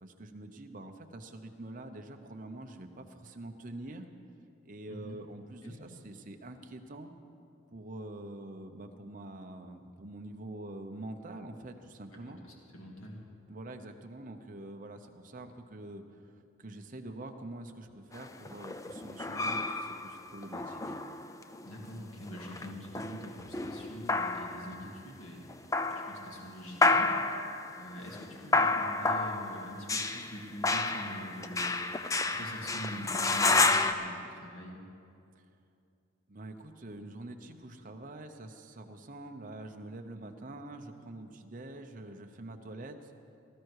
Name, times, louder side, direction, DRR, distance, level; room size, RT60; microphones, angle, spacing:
voice 1, 0.0-4.1 4.6-7.1 7.7-12.4 13.5-20.9 36.3-43.1, right 2 dB, 40° right, 5 dB, 0.9 m, -45 dB
voice 2, 12.7-13.2 21.6-25.5 25.9-27.2 27.8-32.0 32.2-34.8, equal, 80° left, -1 dB, 2.2 m, -44 dB
sound 1, 18.1-21.7 22.3-24.8 25.5-26.4 26.8-33.9, left 3 dB, 15° left, 0.4 m, -30 dB
18.5 x 13.5 x 4.8 m, 2.5 s
head